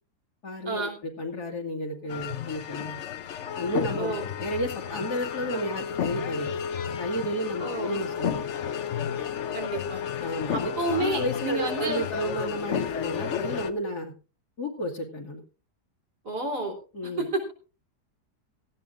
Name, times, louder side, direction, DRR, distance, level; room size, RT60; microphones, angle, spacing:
voice 1, 0.4-3.0 3.6-4.1 4.4-6.6 7.0-8.5 10.2-10.7 11.0-14.1 14.6-15.4 16.9-17.3, equal, 75° left, 1 dB, 2.6 m, -32 dB
sound 1, 2.1-13.7, left 8 dB, 55° left, 1.0 m, -32 dB
voice 2, 7.6-8.0 9.5-10.0 10.5-12.1 16.2-16.7 17.0-17.5, right 2 dB, 75° right, 1 dB, 4.0 m, -30 dB
17.5 x 14.5 x 2.6 m, 0.34 s
omnidirectional pair, 1.7 m